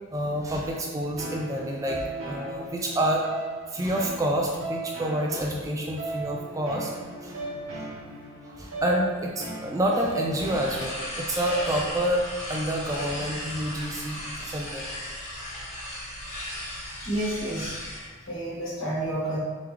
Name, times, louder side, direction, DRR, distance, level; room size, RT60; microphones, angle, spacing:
voice 1, 0.1-3.2 3.7-6.9 7.2-7.5 7.8-7.9 8.5-14.8, right 1 dB, 15° right, -1 dB, 0.3 m, -28 dB
sound 1, 1.2-12.1, right 2 dB, 80° right, 1.0 m, -38 dB
sound 2, 10.4-18.1, left 1 dB, 30° left, 1.3 m, -36 dB
voice 2, 17.0-17.7 18.3-19.4, right 1 dB, 65° left, -7 dB, 1.4 m, -29 dB
3.8 x 3.0 x 3.3 m, 1.5 s
head